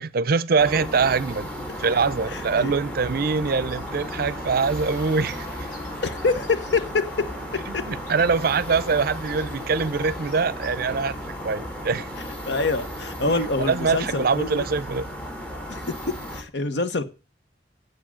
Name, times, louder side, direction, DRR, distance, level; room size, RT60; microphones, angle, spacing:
voice 1, 0.0-1.5 1.8-5.5 7.7-11.2 11.4-12.1 13.3-13.4 13.7-15.1, right 5 dB, 55° right, 0.5 m, -23 dB
sound 1, 0.6-16.4, equal, 5° left, 2.3 m, -35 dB
voice 2, 2.3-2.8 6.0-6.8 7.7-7.8 12.5-14.7 15.7-15.9 16.3-17.0, left 3 dB, 75° left, 1.1 m, -26 dB
Bird, 3.6-11.3, left 1 dB, 55° left, 4.8 m, -46 dB
7.9 x 7.4 x 7.5 m
head